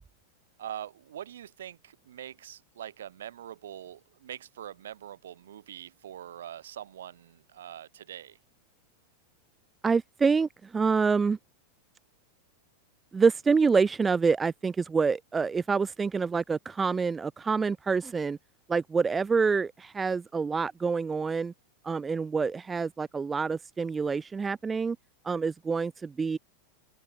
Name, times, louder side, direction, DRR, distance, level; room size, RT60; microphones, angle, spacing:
voice 1, 0.6-8.4, right 11 dB, 60° right, 1.3 m, -43 dB
voice 2, 9.8-11.4 13.1-18.4 18.7-21.5 21.8-25.0 25.2-26.4, right 5 dB, 15° right, 0.3 m, -27 dB
open air
figure-of-eight pair, 90°, 0 cm